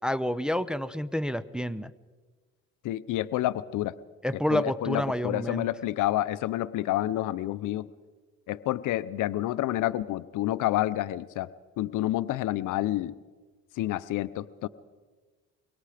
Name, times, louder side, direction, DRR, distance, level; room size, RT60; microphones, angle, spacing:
voice 1, 0.0-1.9 4.2-5.7, equal, 5° right, 11 dB, 0.7 m, -29 dB
voice 2, 2.8-3.9 4.5-7.9 8.5-11.5 11.8-13.1 13.7-14.7, left 15 dB, 85° left, 15 dB, 0.6 m, -29 dB
24.0 x 23.5 x 5.0 m, 1.3 s
cardioid pair, 90°, 30 cm